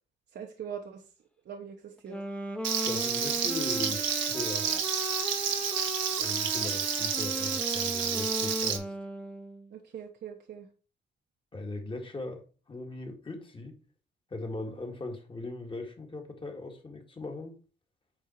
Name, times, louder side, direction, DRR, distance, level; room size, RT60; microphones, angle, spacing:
voice 1, 0.3-1.0 1.4-2.2 4.4-4.9 9.7-10.7, right 8 dB, 65° right, 1.1 m, -42 dB
Wind instrument woodwind instrument, 2.0-9.7, equal, 5° left, 1.0 m, -37 dB
Frying (food), 2.6-8.8, right 7 dB, 85° right, 1.4 m, -30 dB
voice 2, 2.8-4.7 6.2-8.9 11.5-13.8 14.3-17.6, left 2 dB, 25° left, 2.0 m, -39 dB
9.0 x 4.5 x 4.5 m
cardioid pair, 95°, 19 cm